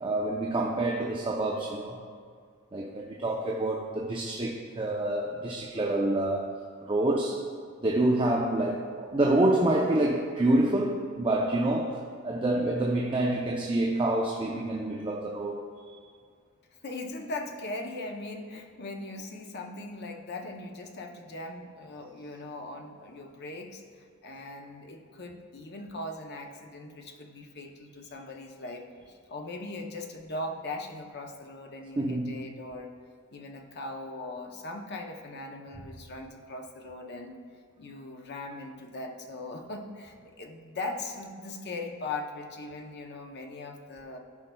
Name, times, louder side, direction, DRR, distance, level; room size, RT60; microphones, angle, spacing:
voice 1, 0.0-2.0 2.7-6.5 6.8-7.4 7.8-15.6 32.0-32.4, right 1 dB, 25° right, -1 dB, 0.5 m, -27 dB
voice 2, 16.8-23.8 24.2-32.9 33.3-37.4 37.8-44.2, left 2 dB, 55° left, 3 dB, 0.7 m, -39 dB
14.5 x 5.4 x 2.3 m, 2.1 s
head